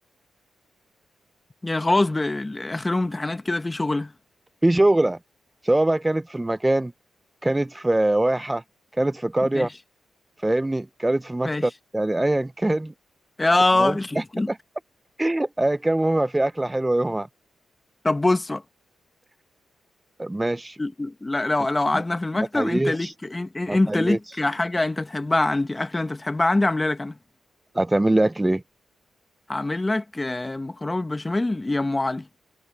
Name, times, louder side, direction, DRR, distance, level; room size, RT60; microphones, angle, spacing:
voice 1, 1.6-4.1 9.5-9.7 11.4-11.7 13.4-14.5 18.0-18.6 20.8-27.2 29.5-32.3, left 2 dB, 20° left, 1.3 m, -24 dB
voice 2, 4.6-5.2 5.6-6.9 7.4-8.6 9.0-9.7 10.4-12.9 13.8-14.6 15.2-17.3 20.2-20.8 21.9-22.0 22.5-23.1 23.7-24.2 27.7-28.6, right 1 dB, 15° right, 0.6 m, -23 dB
cardioid pair, 90°, 0 cm